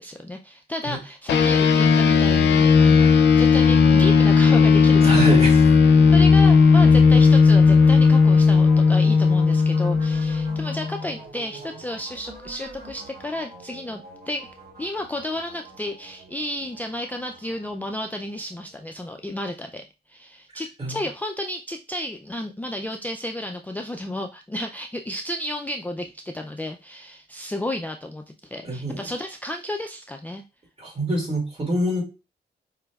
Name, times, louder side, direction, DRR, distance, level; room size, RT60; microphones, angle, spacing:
voice 1, 0.0-3.1 3.4-5.4 6.1-30.4, left 1 dB, 10° left, 3 dB, 0.3 m, -32 dB
sound 1, 1.3-11.0, left 5 dB, 80° left, 0.5 m, -15 dB
sound 2, 2.9-19.1, right 2 dB, 55° right, 2.1 m, -44 dB
voice 2, 5.0-5.6 20.8-21.0 28.6-29.0 30.8-32.0, right 1 dB, 35° right, -1 dB, 2.2 m, -25 dB
4.9 x 3.2 x 2.3 m, 0.29 s
cardioid pair, 85°, 18 cm